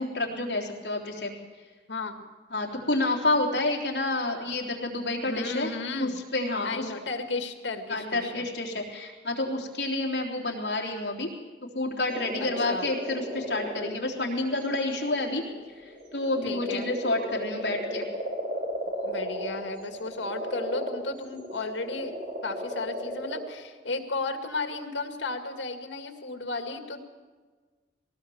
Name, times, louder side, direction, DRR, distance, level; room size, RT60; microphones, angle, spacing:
voice 1, 0.0-1.3 2.5-5.7 6.0-6.9 7.9-11.3 11.7-15.4 15.7-18.1, left 2 dB, 60° left, -1 dB, 3.5 m, -29 dB
voice 2, 1.9-2.2 5.2-6.2 6.6-8.5 12.4-12.9 16.5-16.9 19.0-22.1 22.4-27.0, left 3 dB, 85° left, 6 dB, 2.1 m, -34 dB
sound 1, 12.1-23.4, equal, 40° right, 3.2 m, -35 dB
20.0 x 18.0 x 7.2 m, 1.4 s
head